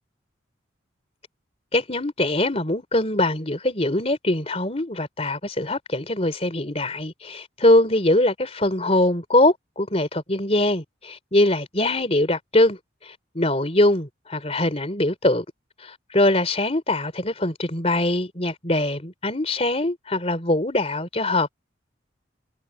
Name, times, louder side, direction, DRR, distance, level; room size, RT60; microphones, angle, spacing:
voice 1, 1.7-15.5 15.8-21.5, left 1 dB, 30° left, 3.6 m, -22 dB
head